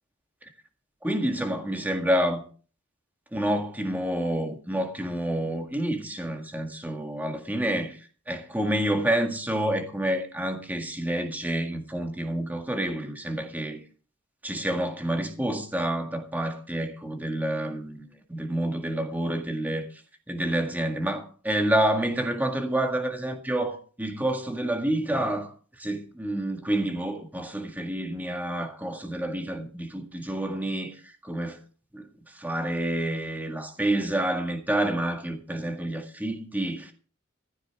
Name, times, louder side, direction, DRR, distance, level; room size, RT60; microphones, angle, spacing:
voice 1, 1.0-2.4 3.3-8.0 8.3-13.8 14.4-19.9 20.3-25.5 25.8-31.6 31.9-36.9, right 1 dB, 10° right, 1.8 m, -28 dB
15.0 x 12.5 x 3.6 m
head